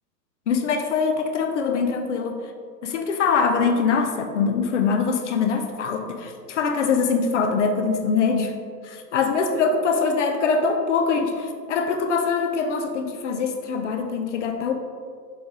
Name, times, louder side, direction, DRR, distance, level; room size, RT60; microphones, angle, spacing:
voice 1, 0.5-2.4 2.8-8.5 8.8-14.7, left 5 dB, 45° left, 6 dB, 0.7 m, -23 dB
6.7 x 4.0 x 3.7 m, 2.1 s
figure-of-eight pair, 110°, 50 cm